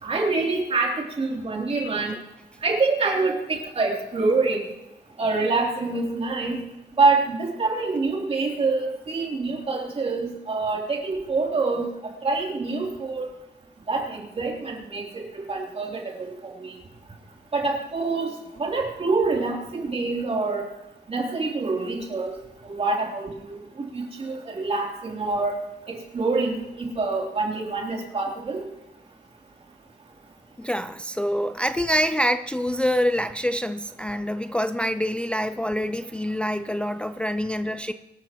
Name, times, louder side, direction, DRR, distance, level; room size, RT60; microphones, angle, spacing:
voice 1, 0.0-2.1 2.6-4.6 5.2-6.6 7.0-13.3 13.9-16.7 17.5-20.7 21.1-22.3 22.6-23.6 23.9-25.6 25.9-28.6, right 3 dB, 35° right, -1 dB, 3.3 m, -26 dB
voice 2, 30.6-37.9, equal, 5° left, 10 dB, 0.4 m, -26 dB
25.0 x 12.5 x 3.0 m, 0.95 s
wide cardioid pair, 175°, 17 cm